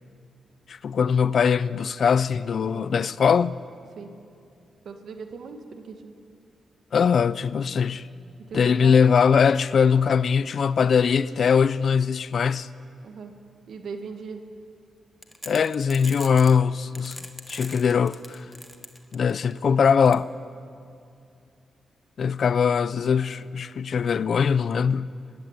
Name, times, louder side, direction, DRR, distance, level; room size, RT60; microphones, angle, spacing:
voice 1, 0.7-3.6 6.9-8.0 8.5-12.7 15.5-17.2 17.5-18.4 19.1-20.3 22.2-25.1, left 6 dB, 65° left, 0.6 m, -21 dB
voice 2, 4.8-6.1 8.5-9.0 13.0-13.3 13.7-14.4, right 5 dB, 75° right, 2.0 m, -38 dB
sound 1, 15.2-16.6 17.0-19.5 20.1-20.2, left 1 dB, 10° left, 1.9 m, -40 dB
25.0 x 16.0 x 9.9 m
cardioid pair, 70°, 0 cm